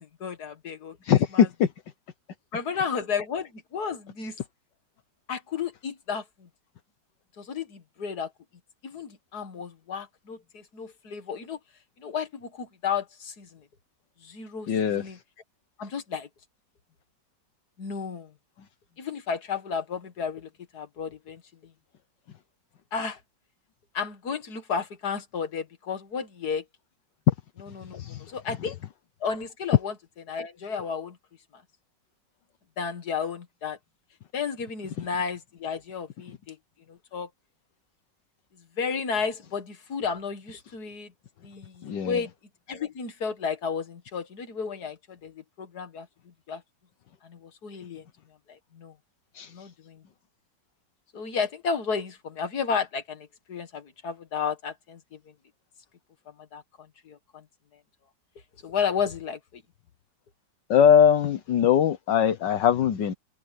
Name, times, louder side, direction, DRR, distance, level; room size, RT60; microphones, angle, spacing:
voice 1, 0.2-1.0 1.3-1.5 2.5-4.4 5.3-6.5 7.4-8.3 8.8-11.6 12.0-13.6 14.2-15.2 15.8-16.3 17.8-18.3 19.0-21.4 22.9-23.2 23.9-26.6 27.6-28.8 29.2-29.9 30.3-31.2 32.8-33.8 34.3-36.6 36.9-37.3 38.8-41.1 41.4-42.3 42.7-46.1 46.5-46.6 47.2-48.0 48.5-48.9 49.5-50.0 51.1-55.2 56.5-56.6 57.1-57.4 58.6-59.6, left 6 dB, 60° left, 2.4 m, -32 dB
voice 2, 1.0-1.7 14.7-15.2 27.3-27.4 28.0-28.3 41.8-42.2 49.4-49.5 60.7-63.1, left 8 dB, 75° left, 1.7 m, -21 dB
omnidirectional pair, 1.9 m